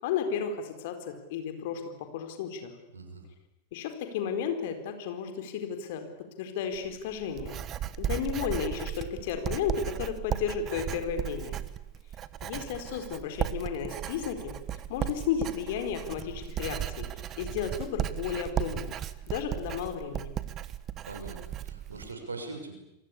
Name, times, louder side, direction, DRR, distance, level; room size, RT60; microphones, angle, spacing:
voice 1, 0.0-2.7 3.7-6.1 6.4-7.6 8.0-11.6 12.4-14.6 14.9-17.1 17.4-18.9 19.3-20.3, left 7 dB, 50° left, 7 dB, 4.3 m, -33 dB
voice 2, 2.9-3.2 21.0-22.7, right 3 dB, 75° right, 5 dB, 6.5 m, -41 dB
Writing, 6.7-22.1, right 11 dB, 30° right, 1.3 m, -36 dB
28.5 x 23.5 x 8.5 m, 0.88 s
figure-of-eight pair, 90°, 0 cm